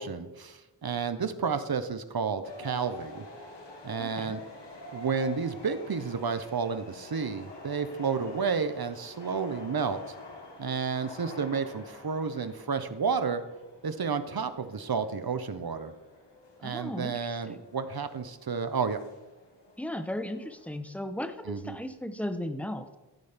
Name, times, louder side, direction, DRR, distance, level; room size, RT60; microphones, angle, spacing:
voice 1, 0.0-3.2 3.8-4.4 4.9-10.0 10.6-13.4 13.8-15.9 16.6-19.0 21.5-21.8, right 5 dB, 60° right, 10 dB, 0.7 m, -31 dB
sound 1, 2.4-20.7, left 2 dB, 75° left, 1.4 m, -48 dB
voice 2, 4.0-4.4 16.6-17.6 19.8-22.9, left 1 dB, 5° left, 8 dB, 0.7 m, -36 dB
14.5 x 5.5 x 3.4 m, 1.1 s
wide cardioid pair, 60°, 43 cm